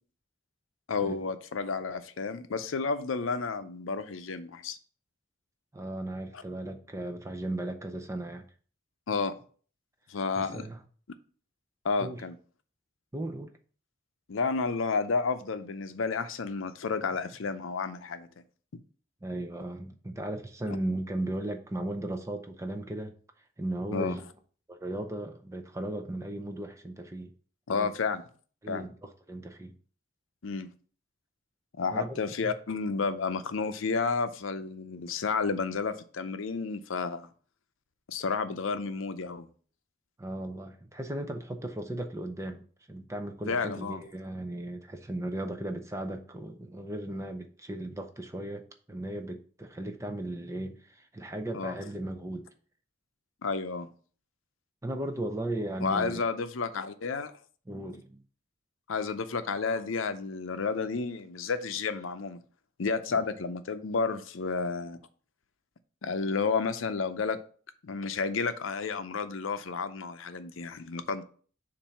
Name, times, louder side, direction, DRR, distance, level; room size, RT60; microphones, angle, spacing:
voice 1, 0.9-4.8 6.3-6.4 9.1-9.3 10.1-10.6 11.8-12.4 14.3-18.3 18.7-18.8 20.7-20.8 23.9-24.2 27.7-28.2 28.7-28.9 30.4-30.7 31.8-37.3 38.1-39.5 43.5-44.0 51.5-51.8 53.4-53.9 55.8-57.3 58.9-62.4 62.8-65.0 66.0-67.4 67.8-71.2, left 4 dB, 85° left, 10 dB, 0.6 m, -31 dB
voice 2, 5.7-8.5 10.4-10.8 12.0-12.2 13.1-13.5 19.2-23.1 23.6-24.2 24.7-27.3 27.7-27.9 28.6-29.7 31.9-32.5 40.2-48.6 48.9-52.5 54.8-56.3 57.7-58.2, right 1 dB, 15° right, 6 dB, 0.5 m, -36 dB
7.1 x 2.6 x 5.7 m, 0.43 s
head